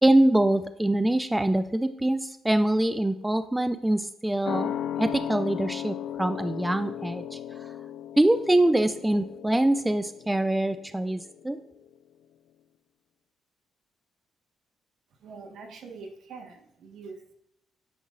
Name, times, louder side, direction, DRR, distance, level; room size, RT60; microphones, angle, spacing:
voice 1, 0.0-4.7 5.0-7.4 8.2-11.6, right 1 dB, 10° right, 11 dB, 0.4 m, -24 dB
sound 1, 4.4-11.5 11.8-11.9, left 10 dB, 90° left, 0.3 m, -36 dB
voice 2, 15.2-17.3, right 4 dB, 75° right, 2 dB, 1.3 m, -44 dB
9.3 x 5.5 x 2.5 m, 0.80 s
cardioid pair, 90°, 0 cm